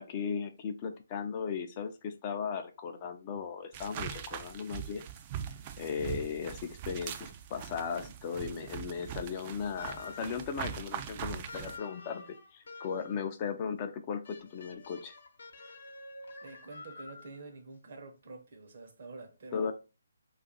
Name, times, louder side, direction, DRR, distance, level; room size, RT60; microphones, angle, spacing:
voice 1, 0.0-5.0 5.8-15.1 19.5-19.7, left 6 dB, 30° left, 0.4 m, -37 dB
sound 1, 3.7-11.8, right 9 dB, 30° right, 0.3 m, -41 dB
sound 2, 9.8-10.5 11.5-13.3 14.2-17.4, left 3 dB, 65° left, 0.8 m, -49 dB
voice 2, 16.4-19.7, right 3 dB, 55° right, 0.7 m, -48 dB
2.6 x 2.4 x 3.8 m
figure-of-eight pair, 145°, 0 cm